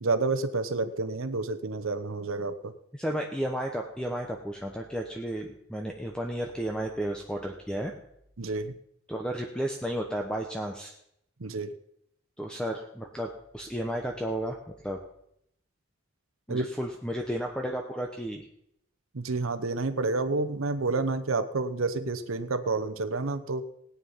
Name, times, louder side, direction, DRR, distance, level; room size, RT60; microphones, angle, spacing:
voice 1, 0.0-2.7 8.4-8.8 11.4-11.7 16.5-16.7 19.1-23.7, right 3 dB, 80° right, 11 dB, 0.9 m, -29 dB
voice 2, 3.0-7.9 9.1-10.9 12.4-14.6 14.8-15.0 16.5-18.5, equal, 5° left, 2 dB, 0.9 m, -33 dB
17.5 x 9.5 x 5.6 m, 0.76 s
head